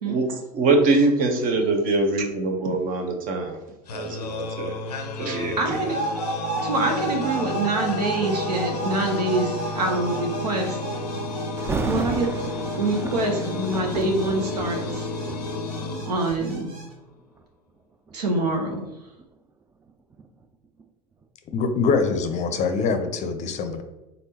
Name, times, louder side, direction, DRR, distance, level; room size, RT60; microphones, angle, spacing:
voice 1, 0.1-3.6 3.9-4.8 5.2-5.8, right 3 dB, 45° right, 4 dB, 0.9 m, -23 dB
sound 1, 3.9-16.8, left 3 dB, 90° left, 0.4 m, -32 dB
voice 2, 5.6-6.0 6.6-10.8 11.9-12.3 12.8-15.1 16.0-16.8 18.1-18.9, right 2 dB, 85° right, 2 dB, 0.9 m, -25 dB
sound 2, 5.7-16.9, right 3 dB, 65° right, 1.3 m, -34 dB
Thunder, 11.6-16.5 17.2-17.4 18.1-20.9 21.2-21.3, right 4 dB, 15° right, 0.3 m, -34 dB
voice 3, 21.5-23.8, left 4 dB, 35° left, 8 dB, 0.6 m, -24 dB
3.9 x 3.5 x 2.8 m, 1.0 s
hypercardioid pair, 85°, 20 cm